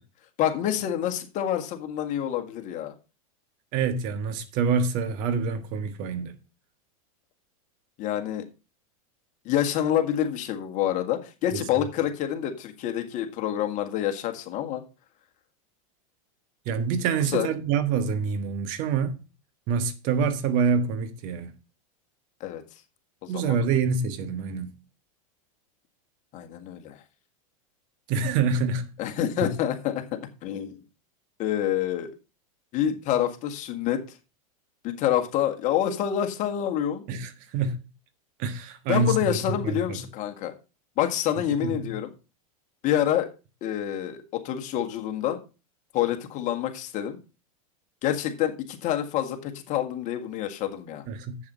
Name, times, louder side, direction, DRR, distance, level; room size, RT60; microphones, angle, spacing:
voice 1, 0.4-2.9 8.0-8.4 9.5-14.8 17.3-17.5 22.4-22.6 23.2-23.6 26.3-27.0 29.0-30.0 30.4-30.8 31.4-32.1 32.7-34.0 34.8-37.0 38.9-40.5 41.0-42.1 42.8-43.3 43.6-45.4 45.9-47.2 48.0-51.0, left 11 dB, 45° left, 1.8 m, -27 dB
voice 2, 3.7-6.3 11.5-11.6 16.6-19.2 19.7-21.5 23.3-24.7 28.1-29.0 29.4-29.5 37.1-37.8 38.4-40.1 41.6-42.0 51.1-51.4, right 5 dB, 50° right, 1.5 m, -26 dB
7.7 x 7.2 x 5.6 m
hypercardioid pair, 110°, 18 cm